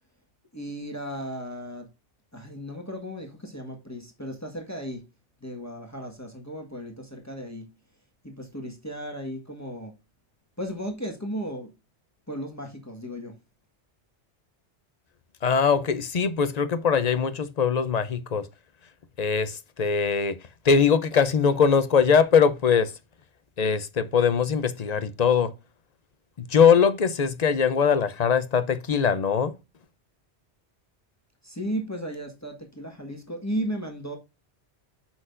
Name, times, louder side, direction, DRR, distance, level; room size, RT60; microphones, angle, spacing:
voice 1, 0.5-1.9 2.3-5.0 5.4-7.7 8.2-9.9 10.6-11.7 12.3-13.3 31.4-34.2, equal, 15° left, 1.5 m, -35 dB
voice 2, 15.4-18.5 19.2-20.4 20.6-22.9 23.6-25.5 26.4-29.5, left 6 dB, 45° left, 0.6 m, -21 dB
7.7 x 6.0 x 2.5 m
omnidirectional pair, 1.2 m